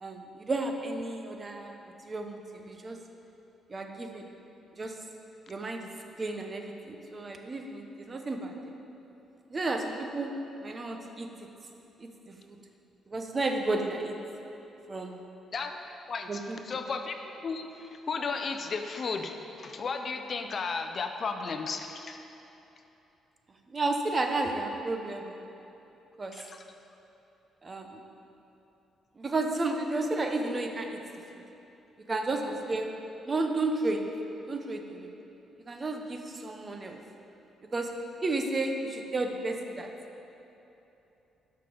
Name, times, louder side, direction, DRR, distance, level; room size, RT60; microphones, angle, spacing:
voice 1, 0.0-1.8 2.1-3.0 3.7-4.3 4.8-4.9 5.5-5.9 6.2-8.5 9.5-10.3 10.6-11.3 12.0-12.6 13.1-14.1 14.9-15.2 16.3-16.8 23.7-25.4 26.2-26.4 27.6-28.0 29.2-31.0 31.3-31.4 32.1-32.9 33.3-34.0 34.5-35.1 35.7-37.0 37.7-37.9 38.2-39.9, right 2 dB, 30° right, 4 dB, 0.9 m, -32 dB
voice 2, 16.1-22.2 26.3-26.6, left 4 dB, 45° left, 6 dB, 0.6 m, -34 dB
12.0 x 5.9 x 5.0 m, 3.0 s
cardioid pair, 90°, 0 cm